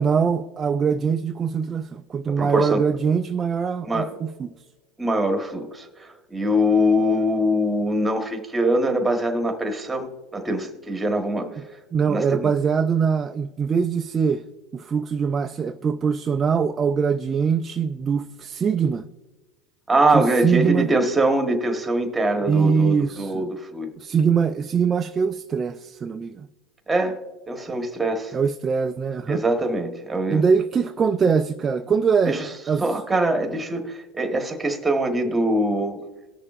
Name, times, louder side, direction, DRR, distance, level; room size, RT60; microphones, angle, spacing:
voice 1, 0.0-4.5 11.9-14.4 14.7-19.0 20.1-20.9 22.5-23.4 24.0-26.5 28.3-29.4 30.3-32.4 32.7-32.8, right 6 dB, 25° right, 0.4 m, -22 dB
voice 2, 2.3-2.8 3.8-4.1 5.0-11.5 12.1-12.5 19.9-23.9 26.9-27.2 27.5-28.3 29.3-30.4 32.3-32.5 32.8-36.0, right 1 dB, 10° right, 1.3 m, -23 dB
19.0 x 6.6 x 2.5 m
supercardioid pair, 120°, 0 cm